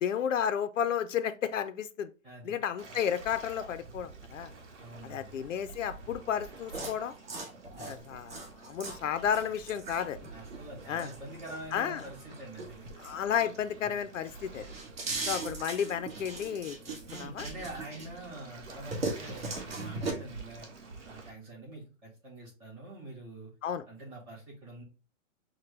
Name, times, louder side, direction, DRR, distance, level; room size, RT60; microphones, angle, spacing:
voice 1, 0.0-2.1 2.4-4.5 5.0-7.1 7.8-10.2 10.9-11.1 11.7-12.0 13.0-14.6 15.3-17.5 23.6-23.8, left 8 dB, 70° left, 0.5 m, -32 dB
voice 2, 2.2-2.6 4.8-5.4 7.7-8.0 10.3-12.8 15.0-15.4 17.1-20.7 21.0-23.5 23.9-24.8, right 2 dB, 15° right, 1.4 m, -45 dB
Waves surf, 2.8-21.3, right 3 dB, 65° right, 1.3 m, -49 dB
sound 1, 6.7-13.8 14.2-18.3 18.6-20.1, right 3 dB, 50° right, 1.4 m, -39 dB
6.0 x 2.2 x 3.2 m
hypercardioid pair, 175°, 39 cm